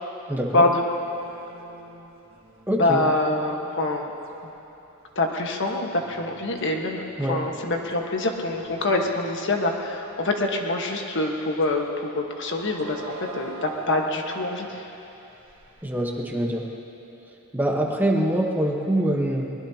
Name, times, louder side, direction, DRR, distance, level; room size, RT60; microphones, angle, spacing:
voice 1, 0.3-0.6 2.7-3.0 7.2-7.4 15.8-16.7 17.5-19.5, right 1 dB, 10° right, 0 dB, 1.1 m, -24 dB
sound 1, 0.9-4.3 4.8-5.0 5.6-11.1 11.6-11.9 12.4-16.3, right 3 dB, 65° right, 1.6 m, -45 dB
voice 2, 2.8-4.1 5.1-7.0 7.3-14.8, left 2 dB, 60° left, 2 dB, 1.4 m, -25 dB
23.0 x 20.5 x 2.9 m, 3.0 s
head